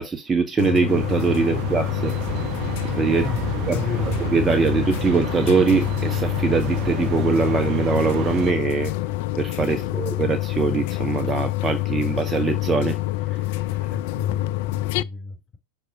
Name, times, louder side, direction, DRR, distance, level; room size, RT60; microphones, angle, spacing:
voice 1, 0.0-2.1 3.0-3.3 3.7-3.8 4.3-8.9 9.4-13.0, right 5 dB, 15° right, 0.9 m, -22 dB
sound 1, 0.6-15.0, left 17 dB, 50° left, 0.4 m, -26 dB
sound 2, 0.9-8.5, right 12 dB, 40° right, 0.5 m, -31 dB
voice 2, 3.2-4.2 9.7-10.0 13.9-15.6, left 5 dB, 25° left, 3.6 m, -32 dB
6.3 x 3.7 x 6.1 m
figure-of-eight pair, 90°, 0 cm